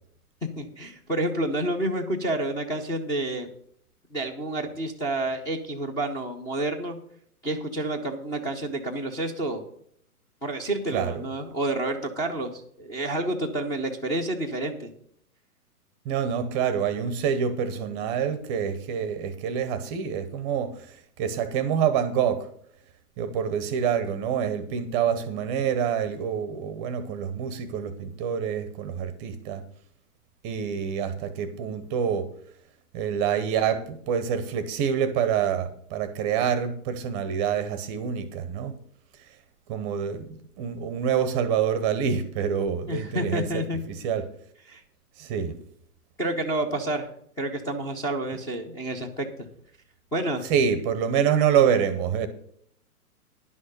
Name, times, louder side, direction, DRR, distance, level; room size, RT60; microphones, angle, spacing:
voice 1, 0.6-3.5 4.1-7.0 7.4-9.6 10.4-14.9 42.9-43.8 44.7-44.8 46.2-47.1 47.4-49.5 50.1-50.4, right 1 dB, 10° left, 0.6 m, -29 dB
voice 2, 16.0-22.5 23.2-29.6 30.4-32.3 32.9-38.7 39.7-44.3 45.2-45.6 50.5-52.3, right 8 dB, 20° right, 0.7 m, -26 dB
11.0 x 6.3 x 6.6 m
hypercardioid pair, 135°, 46 cm